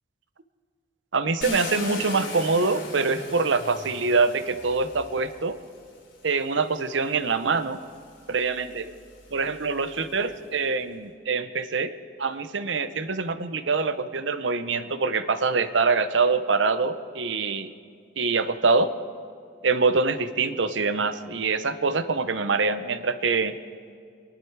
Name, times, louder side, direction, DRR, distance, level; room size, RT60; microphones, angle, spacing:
voice 1, 1.1-5.6 6.2-7.8 8.3-8.9 9.3-11.9 12.2-17.7 18.2-18.9 19.6-23.5, right 4 dB, 80° right, 12 dB, 0.8 m, -24 dB
Car, 1.4-5.5 6.5-6.6 7.1-10.4, left 3 dB, 80° left, 3.3 m, -39 dB
25.0 x 11.5 x 4.7 m, 2.3 s
head